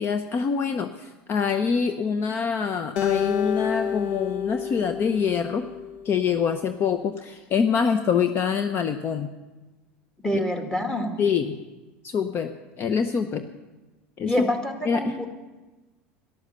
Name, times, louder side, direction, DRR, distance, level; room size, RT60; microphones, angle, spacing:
voice 1, 0.0-5.7 6.0-9.3 11.2-11.6 12.0-13.5 14.2-14.4 14.8-15.2, left 6 dB, 40° left, 8 dB, 0.8 m, -25 dB
Acoustic guitar, 3.0-6.3, left 8 dB, 75° left, 1.0 m, -29 dB
voice 2, 10.2-11.2 14.3-15.3, left 1 dB, 10° left, 4 dB, 2.1 m, -26 dB
13.0 x 11.5 x 6.7 m, 1.2 s
supercardioid pair, 95°, 6 cm